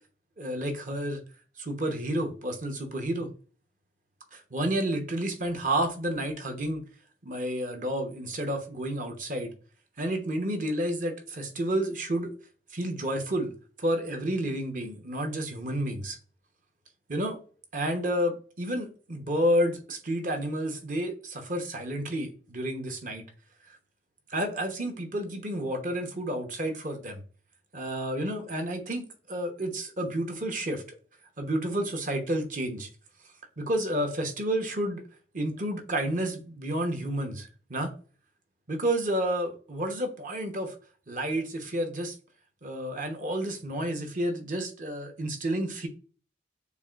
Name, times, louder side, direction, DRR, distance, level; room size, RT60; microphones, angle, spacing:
voice 1, 0.4-1.2 1.6-3.3 4.3-6.8 7.2-9.5 10.0-12.3 12.7-13.5 13.8-16.2 17.1-17.4 17.7-23.2 24.3-27.2 27.7-30.8 31.4-32.9 33.6-35.0 35.3-37.9 38.7-40.7 41.1-42.1 42.6-45.9, right 1 dB, 45° right, 0.9 m, -30 dB
6.8 x 2.5 x 2.4 m
head